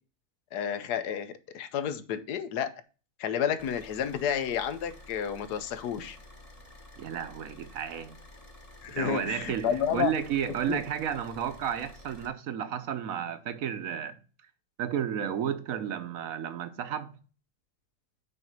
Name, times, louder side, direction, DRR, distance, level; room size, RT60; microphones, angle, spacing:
voice 1, 0.5-2.7 3.2-6.2 8.8-10.1 10.7-10.8, left 8 dB, 85° left, 1.3 m, -31 dB
Car / Idling, 3.6-12.3, left 1 dB, 25° left, 1.2 m, -51 dB
voice 2, 7.0-8.2 8.9-14.2 14.8-17.2, right 9 dB, 65° right, 1.1 m, -32 dB
6.2 x 4.4 x 5.2 m
omnidirectional pair, 1.7 m